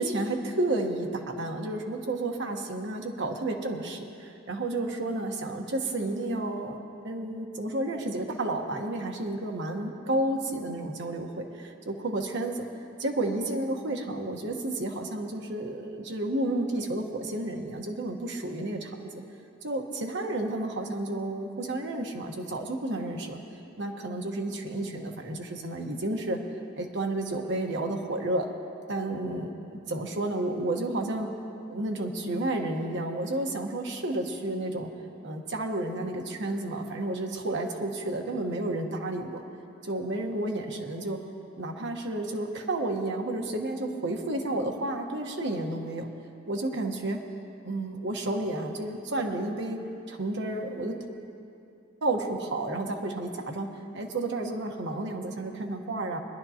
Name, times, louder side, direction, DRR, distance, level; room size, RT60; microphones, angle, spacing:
voice 1, 0.0-6.8 7.0-12.6 13.0-19.2 19.6-23.4 23.8-26.4 26.7-28.5 28.9-31.3 31.7-34.9 35.2-39.4 39.8-41.2 41.5-46.1 46.5-47.2 47.6-49.8 50.1-51.0 52.0-56.2, right 2 dB, 60° right, 2 dB, 1.2 m, -31 dB
22.5 x 11.5 x 2.9 m, 2.6 s
head